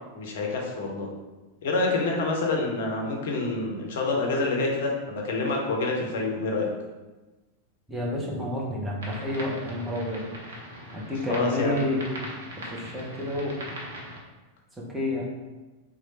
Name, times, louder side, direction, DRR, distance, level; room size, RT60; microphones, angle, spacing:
voice 1, 0.1-1.1 1.6-6.7 11.3-11.8, left 3 dB, 55° left, 0 dB, 0.7 m, -27 dB
voice 2, 7.9-10.3 10.9-12.3 12.6-13.7 14.7-15.3, left 1 dB, 5° right, -4 dB, 0.9 m, -30 dB
sound 1, 9.0-14.2, equal, 65° right, 0.8 m, -40 dB
3.1 x 2.4 x 4.2 m, 1.2 s
figure-of-eight pair, 90°, 0 cm